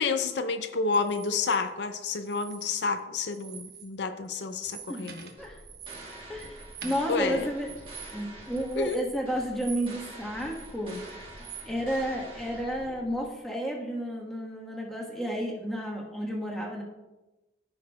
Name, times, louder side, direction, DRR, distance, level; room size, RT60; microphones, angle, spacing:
voice 1, 0.0-5.3 7.1-7.5 8.8-9.0, left 4 dB, 75° left, 8 dB, 0.5 m, -29 dB
sound 1, 0.9-1.6 2.2-3.0 3.3-3.9 4.2-10.1 10.4-11.7, right 7 dB, 60° right, 1.2 m, -46 dB
voice 2, 4.9-5.6 6.3-6.6 6.8-7.7 8.1-11.0 11.6-16.8, equal, ahead, -3 dB, 1.4 m, -32 dB
sound 2, 5.4-13.3, right 1 dB, 30° right, 1.7 m, -46 dB
14.5 x 6.1 x 2.3 m, 1.1 s
head